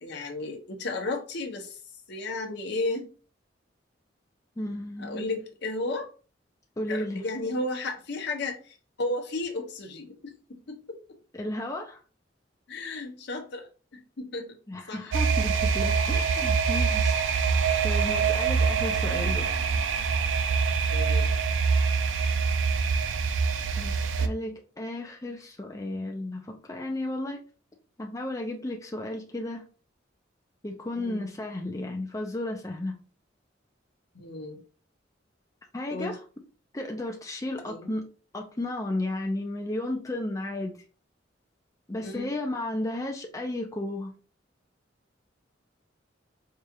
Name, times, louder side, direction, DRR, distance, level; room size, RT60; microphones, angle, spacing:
voice 1, 0.0-1.8 2.1-3.1 5.0-6.1 6.9-11.0 12.7-14.6 14.9-15.1 19.1-19.3 20.9-21.3 30.9-31.3 34.1-34.6 35.9-36.2 37.6-37.9 42.0-42.3, left 2 dB, 65° left, 4 dB, 0.8 m, -34 dB
voice 2, 4.6-5.4 6.8-7.2 11.3-12.0 14.7-17.2 17.8-19.5 23.8-27.4 28.0-29.6 30.6-33.0 35.7-36.2 36.7-38.1 38.3-40.8 41.9-44.1, left 1 dB, 20° left, 1 dB, 0.5 m, -33 dB
sound 1, 15.1-24.3, right 5 dB, 85° right, 0.4 m, -25 dB
4.7 x 2.4 x 2.8 m, 0.36 s
head